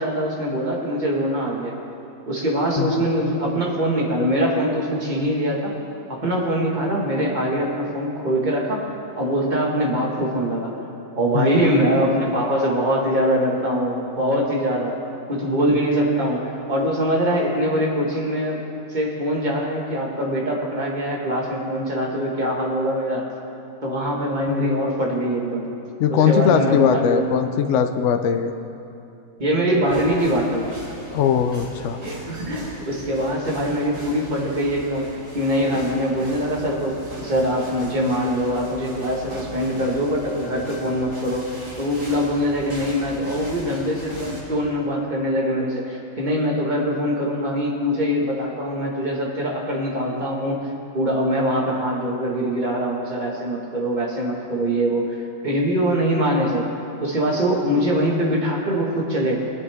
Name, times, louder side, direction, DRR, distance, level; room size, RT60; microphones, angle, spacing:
voice 1, 0.0-1.7 2.3-5.7 6.1-10.7 11.2-15.0 15.3-18.6 18.9-23.3 23.8-25.7 26.1-27.3 29.4-30.8 32.0-41.5 41.8-50.7 50.9-55.2 55.4-56.7 57.0-59.4, equal, 35° right, -2 dB, 1.8 m, -23 dB
voice 2, 24.5-24.8 26.0-28.5 31.1-32.0, left 8 dB, 65° left, 7 dB, 0.9 m, -20 dB
sound 1, 29.8-44.4, equal, 65° right, 3.9 m, -38 dB
20.0 x 8.4 x 3.6 m, 2.7 s
omnidirectional pair, 1.4 m